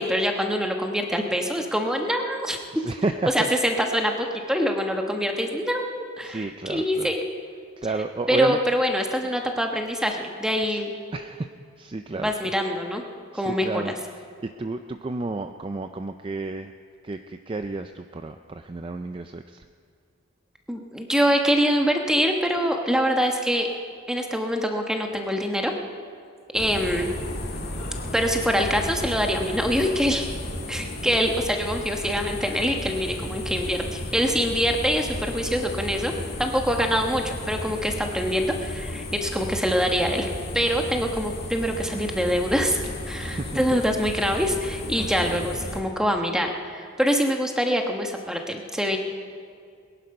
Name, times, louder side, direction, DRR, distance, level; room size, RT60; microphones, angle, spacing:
voice 1, 0.0-2.8 3.3-7.2 8.3-10.9 12.2-13.0 13.3-13.9 20.7-23.7 24.1-25.7 26.5-27.1 28.1-30.3 30.7-36.1 36.4-40.3 40.5-49.0, equal, 5° right, 3 dB, 1.1 m, -24 dB
voice 2, 2.7-3.6 6.2-7.1 7.8-8.6 10.7-10.8 11.1-12.3 13.3-14.1 14.4-16.7 17.0-19.6 43.1-43.8 45.0-45.4, right 3 dB, 25° right, 8 dB, 0.4 m, -31 dB
sound 1, 26.5-45.8, left 1 dB, 45° left, 1.9 m, -34 dB
21.0 x 11.0 x 5.4 m, 2.3 s
head